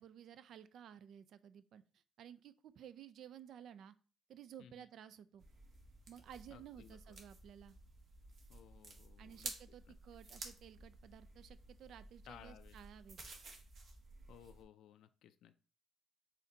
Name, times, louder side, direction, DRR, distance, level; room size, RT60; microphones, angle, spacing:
voice 1, 0.0-3.9 4.3-5.5 6.1-7.8 9.2-13.2, right 9 dB, 70° right, 14 dB, 0.3 m, -55 dB
sound 1, 5.4-14.6, right 3 dB, 55° right, 1.0 m, -53 dB
voice 2, 6.5-7.2 8.5-9.5 9.9-10.2 12.2-12.8 14.3-15.6, left 9 dB, 80° left, 10 dB, 0.3 m, -59 dB
4.1 x 2.5 x 3.9 m, 0.36 s
cardioid pair, 90°, 0 cm